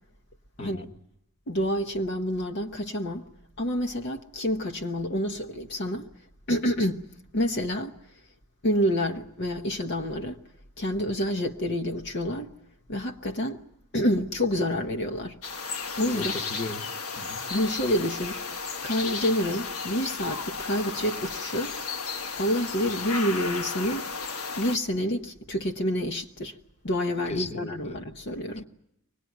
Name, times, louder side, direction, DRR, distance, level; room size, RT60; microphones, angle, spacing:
voice 1, 0.6-0.9 16.1-16.8 17.2-17.4 27.3-28.0, left 3 dB, 30° left, 1.3 m, -36 dB
voice 2, 1.5-3.2 3.6-6.1 6.5-7.0 7.3-7.9 8.6-10.4 10.8-12.5 12.9-13.6 13.9-15.4 16.0-16.4 17.5-18.4 18.8-21.8 22.4-24.1 24.6-26.6 26.8-28.6, equal, 50° left, 1.0 m, -28 dB
sound 1, 15.4-24.8, left 4 dB, 80° left, 1.6 m, -34 dB
24.0 x 19.5 x 9.3 m
head